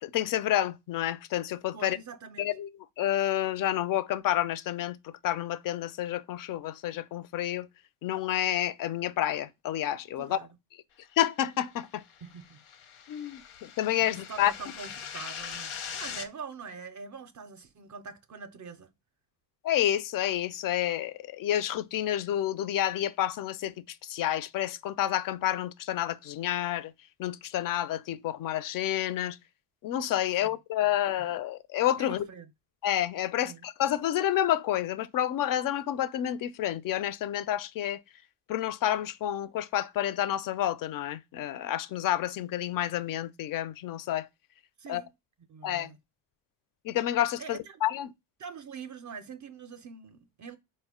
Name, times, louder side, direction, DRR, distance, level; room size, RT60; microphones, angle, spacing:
voice 1, 0.0-2.0 2.4-2.7 3.0-7.7 8.0-10.4 11.2-12.0 13.1-14.5 19.6-26.9 27.2-29.4 29.8-32.2 32.8-38.0 38.5-44.3 44.9-45.0 45.6-45.9 46.8-48.1, left 12 dB, 45° left, 0.4 m, -29 dB
voice 2, 1.7-2.5 10.2-10.5 12.2-12.6 13.1-13.3 14.0-18.9 30.4-30.6 32.0-32.5 33.4-33.7 44.8-45.1 45.5-46.0 47.4-47.8 48.4-50.6, right 5 dB, 40° right, 0.5 m, -44 dB
sound 1, 11.8-16.3, left 7 dB, 80° left, 0.8 m, -41 dB
4.1 x 2.1 x 3.5 m
supercardioid pair, 65°, 49 cm